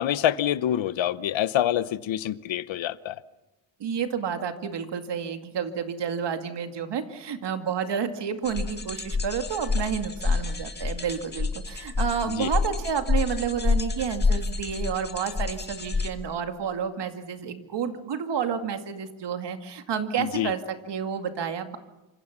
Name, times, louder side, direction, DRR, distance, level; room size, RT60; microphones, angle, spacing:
voice 1, 0.0-3.2 12.4-12.5 20.2-20.5, left 11 dB, 75° left, 1.0 m, -26 dB
voice 2, 3.8-21.8, right 7 dB, 60° right, 2.3 m, -30 dB
sound 1, 8.4-16.1, left 4 dB, 20° left, 1.8 m, -28 dB
27.5 x 26.0 x 6.0 m
wide cardioid pair, 165°, 47 cm